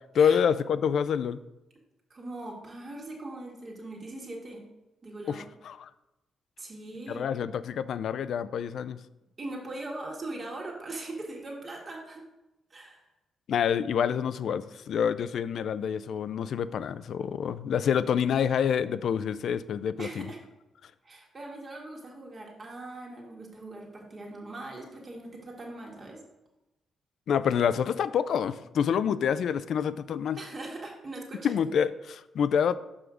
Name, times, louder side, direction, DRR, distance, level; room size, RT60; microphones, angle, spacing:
voice 1, 0.1-1.4 5.3-5.9 7.1-9.0 13.5-20.3 27.3-30.4 31.4-32.8, left 7 dB, 70° left, 14 dB, 0.3 m, -27 dB
voice 2, 2.1-4.6 5.0-5.4 6.6-7.3 9.4-12.2 12.7-13.0 20.0-20.4 21.0-26.2 30.4-31.5, right 2 dB, 40° right, -1 dB, 1.6 m, -40 dB
6.1 x 4.9 x 4.9 m, 0.96 s
supercardioid pair, 55°, 0 cm